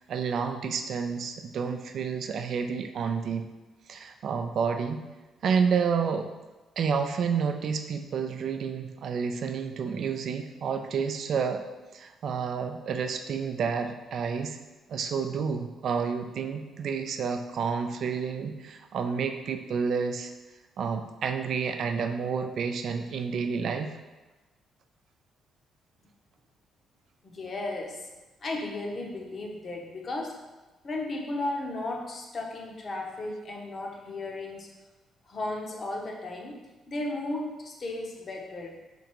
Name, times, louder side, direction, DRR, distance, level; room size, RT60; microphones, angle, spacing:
voice 1, 0.1-3.4 3.9-5.0 5.4-6.3 6.8-11.6 11.9-14.6 14.9-20.3 20.8-23.9, right 6 dB, 65° right, 6 dB, 0.4 m, -30 dB
voice 2, 27.2-28.1 28.4-30.3 30.8-34.7 35.3-36.6 36.9-38.9, left 2 dB, 45° left, 0 dB, 0.7 m, -35 dB
3.8 x 3.4 x 3.0 m, 1.2 s
cardioid pair, 90°, 0 cm